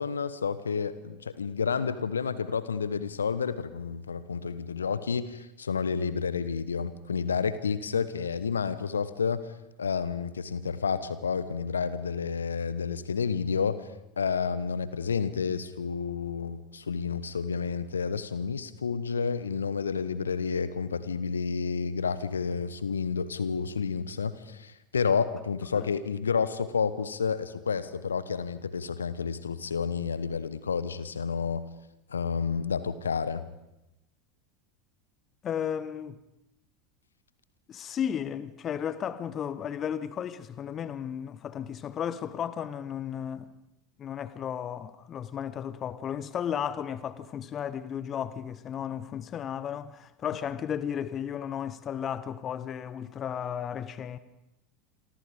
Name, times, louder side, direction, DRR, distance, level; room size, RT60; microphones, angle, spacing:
voice 1, 0.0-9.4 9.8-13.8 14.2-31.6 32.1-33.4, left 6 dB, 75° left, 1.2 m, -30 dB
voice 2, 35.4-36.2 37.7-43.5 44.0-54.2, left 9 dB, 30° left, 1.2 m, -34 dB
28.0 x 24.5 x 5.2 m
figure-of-eight pair, 80°, 0 cm